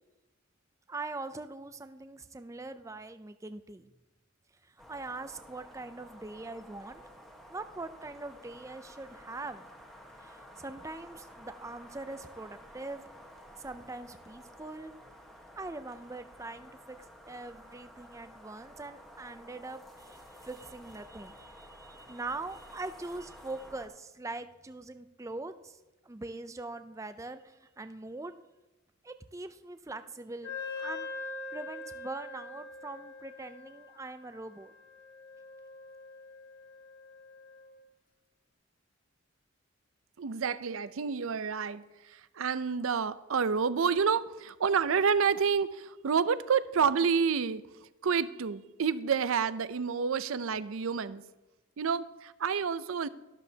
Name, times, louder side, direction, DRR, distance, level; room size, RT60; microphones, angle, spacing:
voice 1, 0.9-3.9 4.6-7.0 7.5-9.7 10.2-13.0 13.6-14.9 15.6-17.0 17.3-28.3 29.0-31.1 31.5-34.7, right 2 dB, 15° right, 10 dB, 0.4 m, -42 dB
sound 1, 4.8-23.9, equal, ahead, 1.2 m, -52 dB
Wind instrument woodwind instrument, 30.4-37.8, left 3 dB, 55° left, 3.1 m, -43 dB
voice 2, 40.2-47.6 48.0-51.2 51.8-53.1, right 6 dB, 75° right, 15 dB, 0.5 m, -29 dB
12.5 x 12.0 x 2.8 m, 1.1 s
head